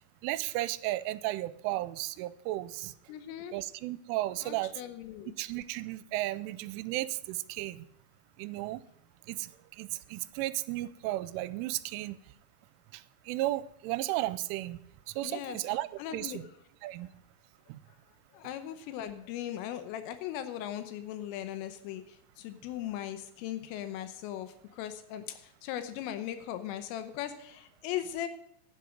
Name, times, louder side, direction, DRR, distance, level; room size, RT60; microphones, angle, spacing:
voice 1, 0.2-2.9 3.5-4.7 5.4-7.8 8.4-8.8 9.3-9.5 9.8-12.2 12.9-14.8 15.1-16.4 16.8-17.1 17.7-17.8, right 16 dB, 85° right, 17 dB, 3.0 m, -34 dB
voice 2, 3.1-3.6 4.4-5.4 15.2-16.4 18.3-28.3, left 11 dB, 85° left, 10 dB, 3.5 m, -39 dB
11.5 x 10.5 x 5.1 m, 0.76 s
omnidirectional pair, 5.7 m